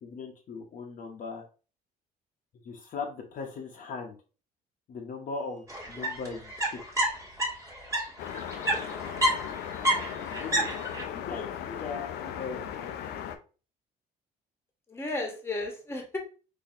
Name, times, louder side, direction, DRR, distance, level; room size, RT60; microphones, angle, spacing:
voice 1, 0.0-1.4 2.5-4.2 4.9-6.8 10.3-13.3, left 4 dB, 50° left, 1 dB, 0.7 m, -39 dB
sound 1, 5.7-8.0 8.3-11.0, equal, 15° right, 1.4 m, -28 dB
sound 2, 8.2-13.4, left 9 dB, 80° left, 0.5 m, -37 dB
voice 2, 8.5-9.1 14.9-16.2, left 2 dB, 15° left, 2 dB, 1.0 m, -35 dB
4.1 x 2.7 x 2.5 m, 0.36 s
cardioid pair, 110°, 17 cm